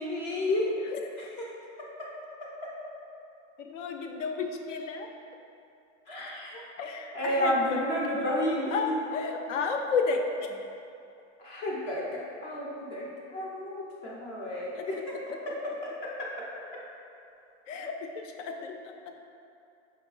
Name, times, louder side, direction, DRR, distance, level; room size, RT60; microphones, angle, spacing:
voice 1, 0.0-0.8 1.2-1.5 2.0-2.1 6.1-6.6 7.1-9.0 11.4-15.5 15.8-15.9, left 1 dB, 30° left, -4 dB, 0.4 m, -31 dB
voice 2, 3.6-5.1 6.8-7.8 8.7-10.2 10.5-10.6 14.7-14.8 17.7-17.9 18.4-18.7, left 5 dB, 80° left, 4 dB, 0.5 m, -31 dB
4.7 x 3.0 x 2.3 m, 2.6 s
supercardioid pair, 155°, 37 cm